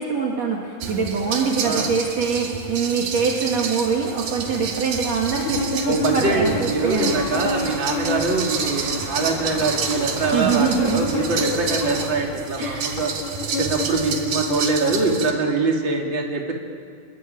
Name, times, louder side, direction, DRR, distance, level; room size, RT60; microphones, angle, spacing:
voice 1, 0.0-7.2 10.3-11.1 12.6-13.0, right 5 dB, 55° right, -1 dB, 3.3 m, -24 dB
sound 1, 0.8-15.3, right 6 dB, 85° right, 3.9 m, -30 dB
voice 2, 1.6-1.9 5.9-13.1 13.6-16.5, right 3 dB, 35° right, 0 dB, 3.5 m, -23 dB
sound 2, 5.4-8.6 8.8-15.5, left 4 dB, 65° left, 5.3 m, -29 dB
sound 3, 6.8-12.1, left 1 dB, 15° left, 4.9 m, -35 dB
27.5 x 22.0 x 9.2 m, 2.2 s
omnidirectional pair, 3.9 m